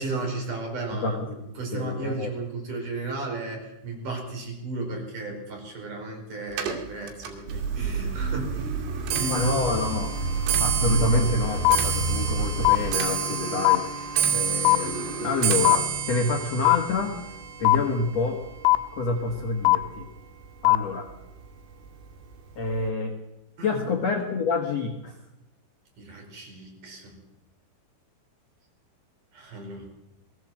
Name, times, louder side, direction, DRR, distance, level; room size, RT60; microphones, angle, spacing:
voice 1, 0.0-8.8 9.1-9.5 23.6-23.8 26.0-27.2 29.3-29.9, right 2 dB, 40° right, 1 dB, 6.1 m, -34 dB
voice 2, 1.0-1.3 1.7-2.3 9.3-10.1 10.6-17.2 17.6-18.4 18.9-20.1 20.6-21.1 22.6-23.1 23.6-25.2, left 3 dB, 55° left, 3 dB, 1.9 m, -27 dB
Clock, 6.5-19.9 20.2-20.7 21.5-21.6 21.9-22.3 22.5-22.6, right 7 dB, 80° right, 5.0 m, -30 dB
sound 1, 7.5-12.9, right 4 dB, 65° right, 3.9 m, -29 dB
sound 2, 11.7-11.8 12.7-12.8 13.7-13.8 14.7-14.8 15.7-15.8 16.7-16.8 17.7-17.8 18.7-18.8 19.7-19.8 20.7-20.8, left 22 dB, 80° left, 3.4 m, -17 dB
21.5 x 17.0 x 7.7 m, 0.91 s
omnidirectional pair, 5.6 m